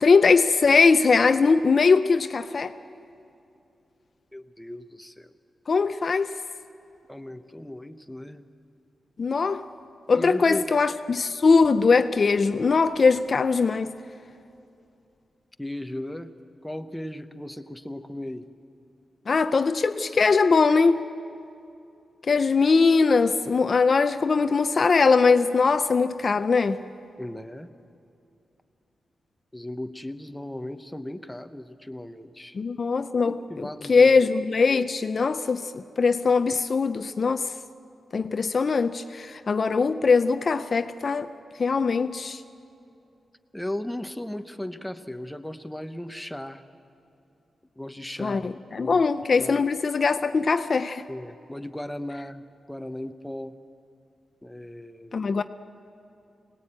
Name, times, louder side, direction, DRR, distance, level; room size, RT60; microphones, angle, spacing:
voice 1, 0.0-2.7 5.7-6.3 9.2-9.6 10.1-13.9 19.3-21.1 22.3-26.8 32.5-37.5 38.1-41.3 41.6-42.4 48.2-51.0 55.1-55.4, left 4 dB, 40° left, 0.5 m, -21 dB
voice 2, 4.3-5.3 7.1-8.4 10.1-10.7 15.6-16.3 16.6-18.5 27.2-27.7 29.5-32.6 33.2-34.2 43.5-46.6 47.8-49.0 49.4-49.6 51.1-53.6 54.4-55.3, left 1 dB, 5° left, 0.8 m, -36 dB
24.5 x 19.0 x 8.8 m
wide cardioid pair, 165°, 0 cm